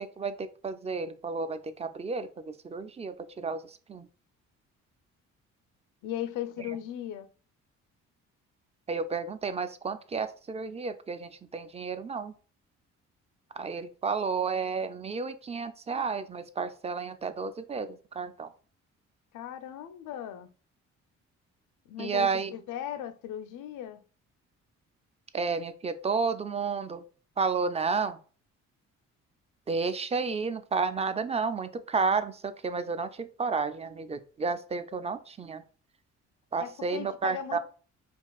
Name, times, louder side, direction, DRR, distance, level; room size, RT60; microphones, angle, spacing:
voice 1, 0.0-3.6 3.9-4.1 8.9-12.3 13.6-18.5 22.0-22.5 25.3-27.0 27.4-28.2 29.7-35.6 36.5-37.6, right 4 dB, 20° right, 0.3 m, -31 dB
voice 2, 6.0-7.3 19.3-20.5 21.9-24.0 36.6-37.6, left 10 dB, 85° left, 0.5 m, -37 dB
5.3 x 2.4 x 2.3 m
cardioid pair, 90°, 30 cm